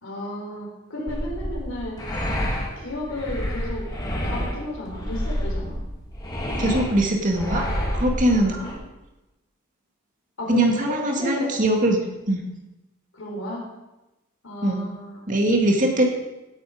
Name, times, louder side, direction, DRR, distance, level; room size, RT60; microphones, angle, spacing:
voice 1, 0.0-2.0 2.8-3.9 4.2-5.8 8.3-8.7 10.4-11.5 13.1-13.7 14.4-15.2, left 1 dB, 90° left, -1 dB, 4.5 m, -33 dB
sound 1, 1.1-8.7, equal, 20° left, 3.0 m, -28 dB
voice 2, 6.6-7.7 7.9-8.6 10.5-12.0 12.3-12.4 14.6-14.9 15.3-16.0, right 1 dB, 40° right, 1 dB, 2.2 m, -21 dB
17.0 x 8.9 x 5.1 m, 1.0 s
head